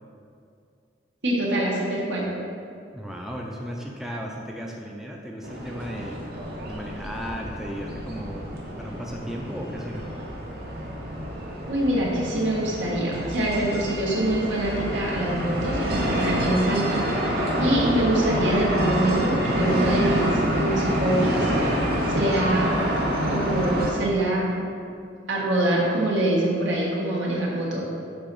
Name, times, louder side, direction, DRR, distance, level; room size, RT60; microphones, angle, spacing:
voice 1, 1.2-2.3 11.7-21.5 22.0-22.8 23.2-24.7 25.3-27.8, right 1 dB, 80° right, -4 dB, 1.6 m, -25 dB
voice 2, 2.9-6.3 6.6-8.5 8.8-10.1, equal, ahead, -1 dB, 0.5 m, -35 dB
sound 1, 5.4-23.9, equal, 55° right, 1.1 m, -27 dB
8.4 x 2.9 x 6.1 m, 2.4 s
head